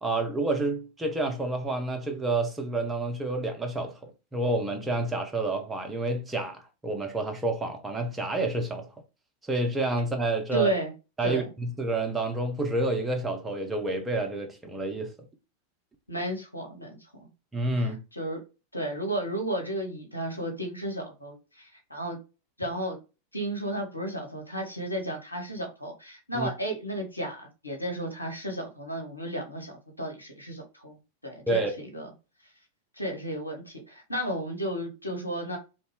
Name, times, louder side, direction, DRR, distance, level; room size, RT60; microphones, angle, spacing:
voice 1, 0.0-8.9 9.5-10.7 11.2-15.1 17.5-18.0 26.3-26.5 31.5-31.7, right 2 dB, 10° right, 0.6 m, -29 dB
voice 2, 10.5-10.9 11.2-11.5 16.1-17.3 17.8-18.4 18.7-22.2 22.6-23.0 23.3-31.0 31.2-32.1 33.0-35.6, right 1 dB, 85° left, 0.8 m, -33 dB
2.6 x 2.2 x 3.2 m
figure-of-eight pair, 90°, 0 cm